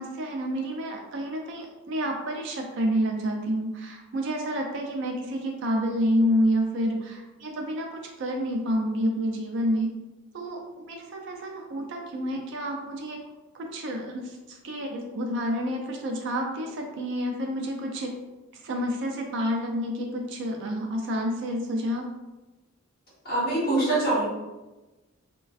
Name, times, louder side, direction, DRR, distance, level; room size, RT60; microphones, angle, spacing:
voice 1, 0.0-10.0 10.3-13.2 13.5-18.2 18.5-22.1, equal, 55° right, 1 dB, 0.3 m, -29 dB
voice 2, 23.2-24.2, right 2 dB, 40° left, -8 dB, 1.2 m, -24 dB
2.3 x 2.2 x 2.4 m, 1.1 s
head